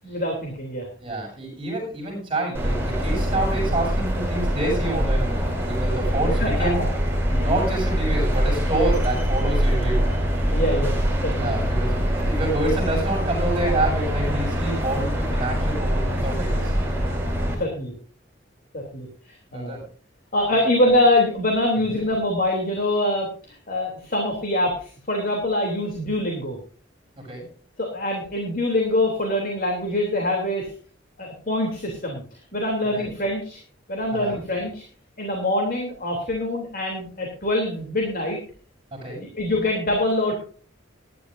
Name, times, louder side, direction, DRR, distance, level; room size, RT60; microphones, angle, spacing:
voice 1, 0.0-0.9 6.4-6.9 7.3-7.4 10.5-10.9 11.2-11.5 17.6-17.9 18.7-19.1 19.5-19.8 20.3-26.6 27.8-30.7 31.2-33.6 33.9-34.8 35.2-38.4 39.2-40.3, left 1 dB, 50° left, 1 dB, 3.2 m, -24 dB
voice 2, 1.0-6.8 7.3-10.1 11.4-16.9 19.5-19.8 20.5-20.6 20.9-21.0 21.9-22.0 27.2-27.5 32.9-33.1 34.1-34.4 38.9-39.2, right 2 dB, 25° right, -3 dB, 7.9 m, -28 dB
sound 1, 2.5-17.5, equal, 10° right, 4.1 m, -23 dB
19.5 x 11.5 x 2.7 m, 0.41 s
head